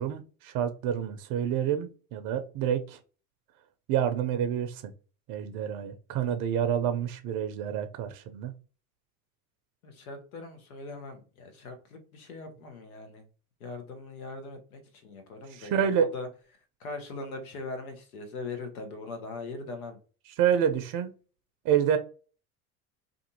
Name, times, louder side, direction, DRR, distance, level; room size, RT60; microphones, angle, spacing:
voice 1, 0.0-3.0 3.9-4.9 5.3-8.5 15.6-16.1 20.4-21.1 21.6-22.0, right 9 dB, 50° right, 0.5 m, -28 dB
voice 2, 9.8-13.2 13.6-16.3 16.8-20.0, left 3 dB, 80° left, 1.0 m, -40 dB
2.5 x 2.5 x 2.7 m
hypercardioid pair, 70°, 42 cm